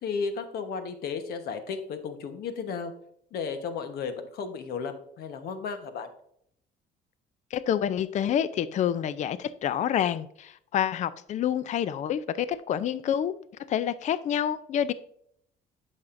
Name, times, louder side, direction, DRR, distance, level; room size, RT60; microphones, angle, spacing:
voice 1, 0.0-2.9 3.3-6.1, left 5 dB, 70° left, 8 dB, 1.1 m, -34 dB
voice 2, 7.5-13.4 13.7-14.9, left 9 dB, 45° left, 15 dB, 0.4 m, -28 dB
8.7 x 6.4 x 2.5 m, 0.68 s
cardioid pair, 110°, 17 cm